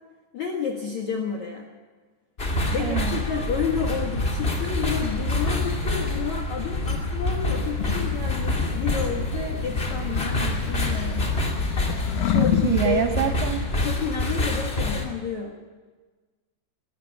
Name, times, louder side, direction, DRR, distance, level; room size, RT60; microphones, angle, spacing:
voice 1, 0.3-1.7 2.7-11.3 12.3-12.5 12.8-13.3 13.8-15.6, left 6 dB, 65° left, 1 dB, 1.9 m, -30 dB
sound 1, 2.4-15.0, left 2 dB, 45° left, 0.7 m, -27 dB
voice 2, 2.8-3.2 12.2-13.7, right 10 dB, 85° right, 8 dB, 2.3 m, -26 dB
sound 2, 7.8-12.8, left 10 dB, 85° left, 2.1 m, -29 dB
21.5 x 13.0 x 9.9 m, 1.4 s
omnidirectional pair, 5.8 m